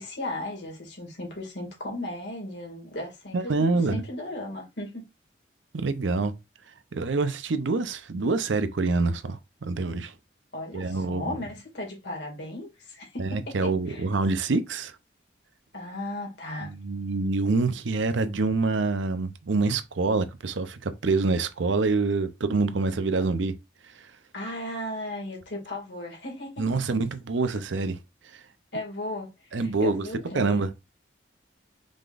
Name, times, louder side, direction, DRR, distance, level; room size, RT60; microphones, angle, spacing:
voice 1, 0.0-5.0 10.5-14.1 15.7-16.7 24.3-27.0 28.7-30.6, left 1 dB, 70° left, 2.1 m, -36 dB
voice 2, 3.3-4.0 5.7-6.3 6.9-10.1 10.7-11.4 13.2-14.9 16.6-23.5 26.6-28.0 29.5-30.0 30.3-30.7, right 3 dB, 85° right, 0.6 m, -26 dB
5.0 x 3.9 x 2.5 m
head